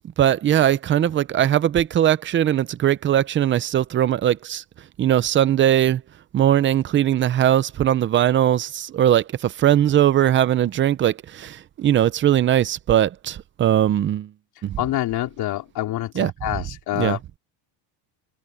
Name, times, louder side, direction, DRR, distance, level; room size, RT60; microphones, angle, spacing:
voice 1, 0.2-4.6 5.0-6.0 6.3-14.3 14.6-14.8 16.2-16.3 17.0-17.2, right 11 dB, 25° right, 0.5 m, -20 dB
voice 2, 14.8-17.4, left 14 dB, 50° left, 3.3 m, -27 dB
cardioid pair, 160°, 47 cm